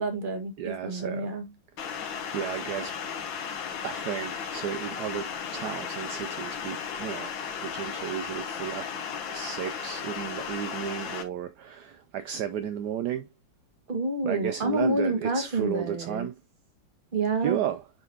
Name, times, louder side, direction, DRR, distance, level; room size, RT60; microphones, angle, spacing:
voice 1, 0.0-1.5 13.9-16.3 17.1-17.6, right 2 dB, 25° right, 1.5 m, -28 dB
voice 2, 0.6-1.3 2.3-2.9 3.8-7.3 7.6-8.9 9.3-13.3 14.2-16.3 17.4-17.8, right 10 dB, 75° right, 1.0 m, -33 dB
sound 1, 1.8-11.2, left 7 dB, 70° left, 1.9 m, -35 dB
9.6 x 3.9 x 2.8 m
omnidirectional pair, 2.2 m